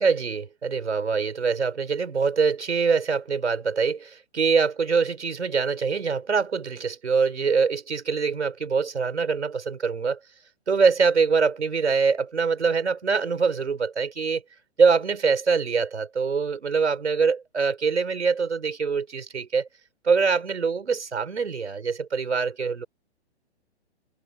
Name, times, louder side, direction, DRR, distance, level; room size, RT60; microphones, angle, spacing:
voice 1, 0.0-10.2 10.7-14.4 14.8-19.7 20.0-22.9, right 5 dB, 85° right, 5.0 m, -24 dB
hypercardioid pair, 125°, 34 cm